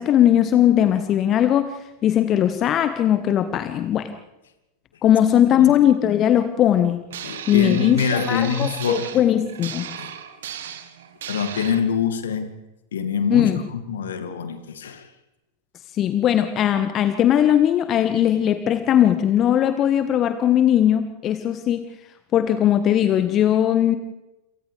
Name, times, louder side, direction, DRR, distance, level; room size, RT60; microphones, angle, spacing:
voice 1, 0.0-1.7 2.0-4.1 5.0-7.0 7.5-9.9 13.3-13.6 16.0-21.8 22.3-24.0, left 10 dB, 30° left, 9 dB, 1.4 m, -19 dB
sound 1, 7.1-11.8, right 9 dB, 60° right, 1.9 m, -35 dB
voice 2, 7.2-9.1 10.0-10.1 11.3-12.5 12.9-15.1, left 6 dB, 65° left, 7 dB, 2.5 m, -25 dB
28.0 x 28.0 x 3.5 m, 0.95 s
figure-of-eight pair, 90°, 0 cm